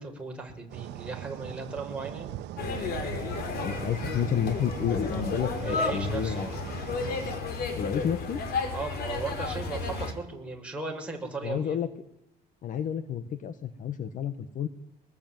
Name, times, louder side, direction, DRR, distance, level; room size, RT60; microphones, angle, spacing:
voice 1, 0.0-2.4 5.6-6.6 8.7-11.7, right 3 dB, 5° right, 0 dB, 6.4 m, -36 dB
sound 1, 0.7-7.4, right 13 dB, 75° right, 1.2 m, -40 dB
sound 2, 2.6-10.1, left 4 dB, 65° left, 4.8 m, -33 dB
voice 2, 3.6-6.5 7.8-8.4 11.4-11.9 12.6-14.7, left 8 dB, 50° left, 12 dB, 1.5 m, -30 dB
24.5 x 21.0 x 9.4 m, 0.81 s
cardioid pair, 125°, 18 cm